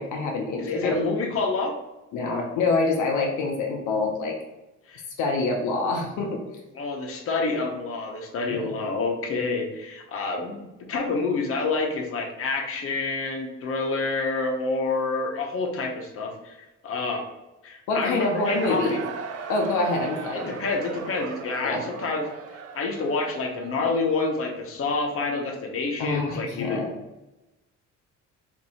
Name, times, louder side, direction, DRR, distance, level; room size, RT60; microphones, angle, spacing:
voice 1, 0.0-1.0 2.1-4.3 5.2-6.4 8.5-8.7 17.9-19.0 19.5-20.5 21.6-21.8 26.0-26.9, left 3 dB, 80° left, 0 dB, 0.6 m, -26 dB
voice 2, 0.6-1.8 4.9-5.0 6.7-10.6 10.9-16.6 16.8-17.2 17.6-19.0 20.3-22.3 22.7-26.8, left 3 dB, 50° left, 1 dB, 0.8 m, -28 dB
Cheering / Crowd, 18.0-24.8, right 6 dB, 55° right, 0.4 m, -39 dB
2.7 x 2.6 x 4.1 m, 1.0 s
cardioid pair, 90°, 30 cm